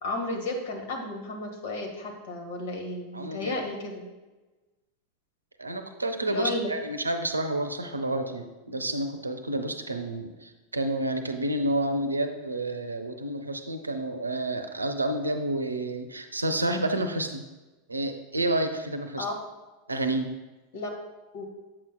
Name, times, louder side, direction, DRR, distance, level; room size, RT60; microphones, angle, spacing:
voice 1, 0.0-4.0 6.3-6.7 19.2-19.3 20.7-20.9 21.3-21.4, left 2 dB, 60° left, 2 dB, 1.5 m, -33 dB
voice 2, 3.1-3.6 5.6-17.4 17.9-19.3 19.9-20.3, right 1 dB, 85° right, 7 dB, 0.6 m, -29 dB
8.7 x 7.5 x 2.2 m, 1.2 s
figure-of-eight pair, 85°, 0 cm